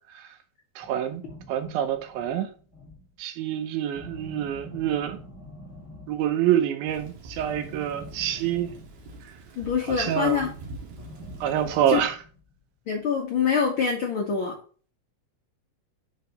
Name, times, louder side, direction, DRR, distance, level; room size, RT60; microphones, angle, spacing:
sound 1, 0.8-3.2 3.9-6.5 7.4-9.4 10.9-12.6, left 2 dB, ahead, 1.0 m, -45 dB
voice 1, 0.8-1.2 1.5-2.5 3.2-5.2 6.1-8.7 9.9-10.4 11.4-12.2, right 10 dB, 80° right, 2.6 m, -26 dB
Thunder / Rain, 6.9-12.0, right 2 dB, 60° right, 2.4 m, -44 dB
voice 2, 9.6-10.5 11.9-12.0 12.9-14.5, left 6 dB, 80° left, 1.1 m, -25 dB
5.5 x 4.8 x 5.2 m
omnidirectional pair, 4.3 m